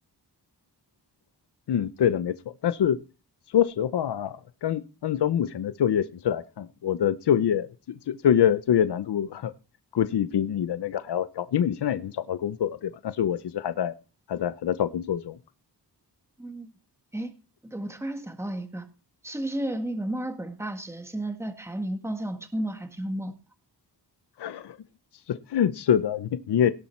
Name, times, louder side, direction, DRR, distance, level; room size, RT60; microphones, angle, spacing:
voice 1, 1.7-2.4 2.6-3.0 3.5-7.7 8.1-9.5 9.9-13.9 14.3-15.4 24.4-24.8 25.3-26.7, left 9 dB, 75° left, 13 dB, 0.8 m, -25 dB
voice 2, 16.4-16.7 17.1-17.3 17.6-18.9 19.2-23.3, right 1 dB, 5° right, 7 dB, 1.7 m, -32 dB
18.0 x 7.3 x 4.5 m, 0.33 s
wide cardioid pair, 90°, 40 cm